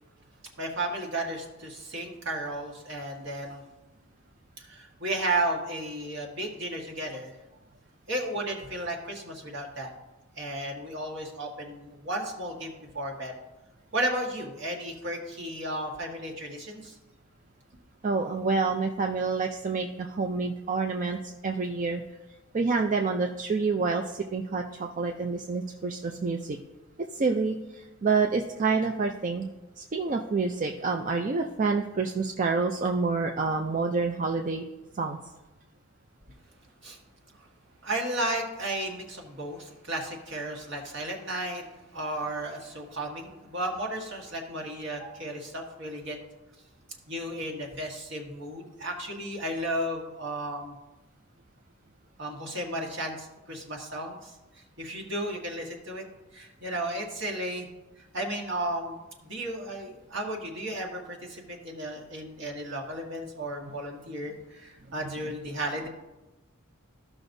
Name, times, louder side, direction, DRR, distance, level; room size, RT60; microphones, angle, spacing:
voice 1, 0.6-3.6 4.6-7.5 8.1-9.9 10.4-13.3 13.9-16.9 36.8-37.0 37.8-46.2 47.1-50.8 52.2-54.3 54.8-56.0 56.3-57.7 58.0-65.9, right 1 dB, 60° right, 0 dB, 1.6 m, -34 dB
voice 2, 18.0-22.0 22.5-26.6 27.1-29.5 29.8-34.7 34.9-35.2 63.6-63.7 65.0-65.1, right 4 dB, 40° right, 3 dB, 0.4 m, -28 dB
14.5 x 5.9 x 2.7 m, 1.0 s
head